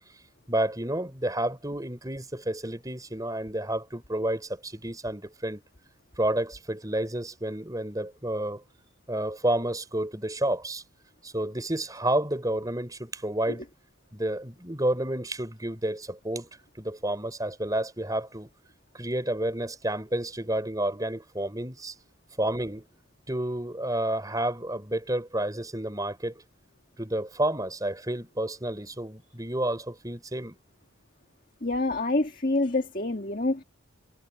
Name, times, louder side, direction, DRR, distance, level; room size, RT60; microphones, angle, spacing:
voice 1, 0.5-5.6 6.2-8.6 9.1-10.8 11.2-13.6 14.1-16.5 16.8-18.5 18.9-21.9 22.4-22.8 23.3-26.4 27.0-30.6, right 1 dB, 15° right, 3.9 m, -30 dB
voice 2, 31.6-33.6, left 2 dB, 40° left, 1.8 m, -27 dB
head